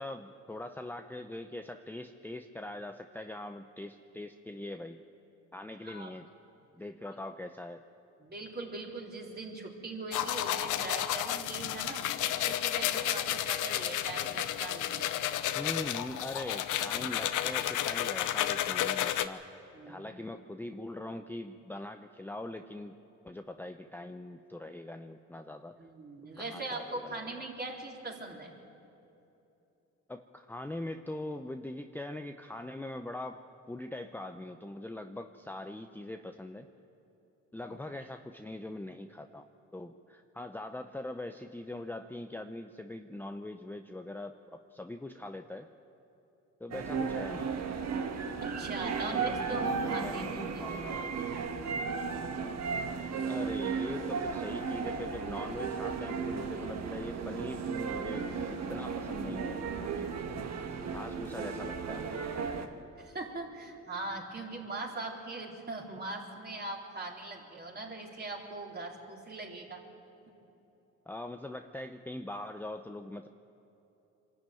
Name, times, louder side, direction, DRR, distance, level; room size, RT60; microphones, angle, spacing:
voice 1, 0.0-5.0 5.5-6.3 6.7-7.8 15.5-19.6 19.9-22.9 23.2-25.8 26.4-27.3 30.1-36.7 37.5-39.5 39.7-45.7 46.6-47.5 48.8-51.1 53.2-60.1 60.9-62.3 71.1-73.3, left 1 dB, 5° left, 6 dB, 0.7 m, -42 dB
voice 2, 8.2-12.1 12.5-15.1 19.7-20.1 25.8-28.5 48.4-50.3 50.5-50.7 63.0-69.8, right 2 dB, 35° right, -1 dB, 3.8 m, -41 dB
sound 1, 10.1-19.3, left 12 dB, 80° left, 0.8 m, -32 dB
sound 2, 46.7-62.7, right 5 dB, 60° right, 1.6 m, -35 dB
24.0 x 13.0 x 9.2 m, 2.9 s
cardioid pair, 90°, 30 cm